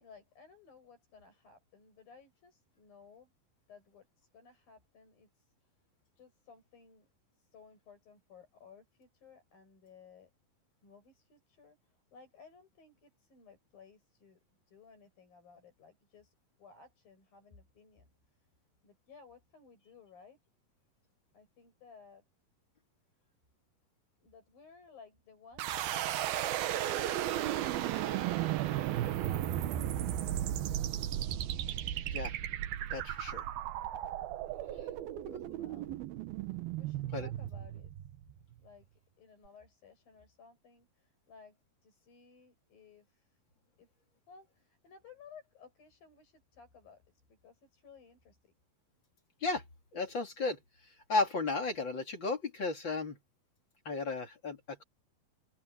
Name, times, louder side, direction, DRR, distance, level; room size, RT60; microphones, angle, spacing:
voice 1, 0.0-3.3 3.7-5.7 6.2-7.1 7.3-10.3 10.8-14.4 14.7-18.5 18.8-20.4 21.3-22.2 23.2-23.3 24.2-25.9 26.3-27.8 28.1-30.9 35.0-35.1 35.6-35.9 36.7-37.9 38.6-41.6 41.8-43.4 43.8-43.9 44.3-48.5, left 5 dB, 70° left, 9.7 m, -58 dB
sound 1, 25.6-38.5, right 12 dB, 85° right, 3.0 m, -35 dB
voice 2, 32.9-33.4 35.3-35.4 37.1-37.3 49.4-49.6 49.9-50.6 51.1-53.2 53.8-54.8, left 3 dB, 35° left, 3.0 m, -34 dB
open air
omnidirectional pair, 4.2 m